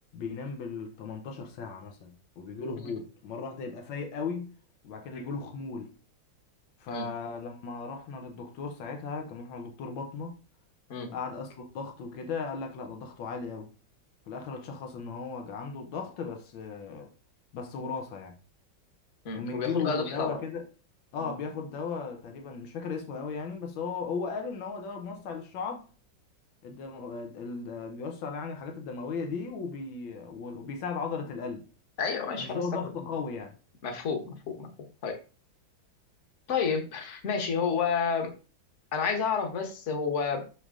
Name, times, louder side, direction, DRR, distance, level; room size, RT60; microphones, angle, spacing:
voice 1, 0.1-4.5 4.8-5.9 6.8-10.4 11.1-13.7 14.3-17.1 17.5-18.4 19.3-20.6 21.1-25.8 26.6-31.7 32.4-33.5, left 5 dB, 90° left, 1.7 m, -36 dB
voice 2, 19.2-20.4 21.2-21.3 32.0-32.9 33.8-34.7 35.0-35.2 36.5-38.3 38.9-40.4, left 6 dB, 45° left, 1.3 m, -30 dB
6.2 x 5.2 x 3.7 m
omnidirectional pair, 2.1 m